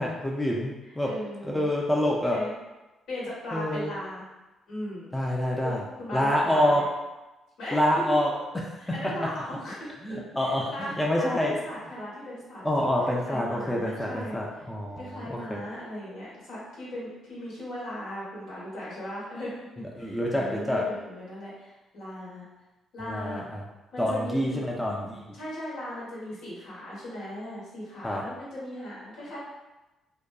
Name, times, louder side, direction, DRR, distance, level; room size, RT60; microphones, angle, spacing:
voice 1, 0.0-1.1 1.4-2.4 3.5-3.9 5.1-5.8 6.1-6.8 7.7-8.3 10.0-11.5 12.6-15.6 20.0-20.8 23.1-23.6 24.0-25.2 28.0-28.2, left 1 dB, 10° left, -2 dB, 0.4 m, -27 dB
voice 2, 1.0-1.7 2.2-2.5 3.1-4.2 4.7-5.1 5.6-6.8 7.6-7.8 8.8-9.9 10.4-14.7 15.0-19.5 20.0-22.5 22.9-23.5 23.9-24.6 25.3-29.4, left 1 dB, 75° left, -7 dB, 1.1 m, -38 dB
2.6 x 2.2 x 2.2 m, 1.1 s
cardioid pair, 90°, 0 cm